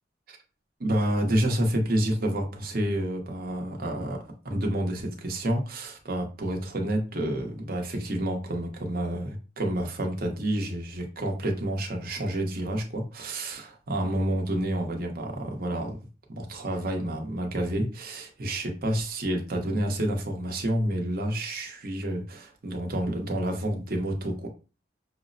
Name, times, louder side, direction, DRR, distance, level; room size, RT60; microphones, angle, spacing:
voice 1, 0.8-4.2 4.4-16.0 16.3-24.5, right 1 dB, 50° right, 2 dB, 0.8 m, -29 dB
5.9 x 2.0 x 2.5 m, 0.33 s
head